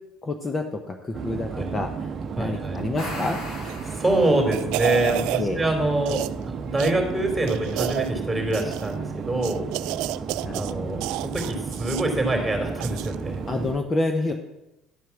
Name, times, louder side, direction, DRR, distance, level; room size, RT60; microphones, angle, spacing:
voice 1, 0.2-2.1 2.4-3.4 5.4-5.6 10.4-10.9 13.5-14.3, left 2 dB, 25° left, 5 dB, 0.9 m, -28 dB
sound 1, 1.1-13.8, right 5 dB, 40° right, 0.7 m, -33 dB
voice 2, 2.3-2.8 3.8-9.7 10.5-13.4, right 2 dB, 10° right, 2 dB, 3.4 m, -25 dB
sound 2, 2.8-4.8, left 1 dB, 55° left, 3.8 m, -37 dB
sound 3, 3.6-3.9 4.3-5.4 6.1-6.4 6.8-6.9 7.5-8.1 8.5-9.0 9.4-10.7 11.0-12.1 12.8-13.2 13.5-13.6, right 16 dB, 75° right, 0.3 m, -30 dB
11.5 x 4.6 x 7.1 m, 0.94 s
supercardioid pair, 85°, 0 cm